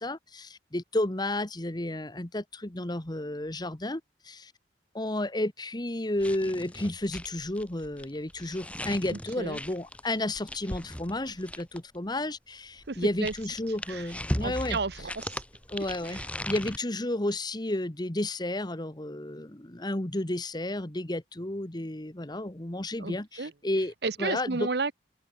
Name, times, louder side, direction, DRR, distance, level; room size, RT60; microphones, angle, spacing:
voice 1, 0.0-4.5 4.9-14.8 15.7-23.9 24.2-24.7, left 1 dB, 25° left, 1.4 m, -32 dB
sound 1, 6.2-12.0 12.8-16.8, left 1 dB, 5° left, 2.2 m, -38 dB
voice 2, 9.1-9.6 12.9-13.3 13.9-14.1 14.4-15.4 16.1-16.2 23.0-23.5 24.0-24.9, right 4 dB, 65° right, 0.9 m, -32 dB
open air
head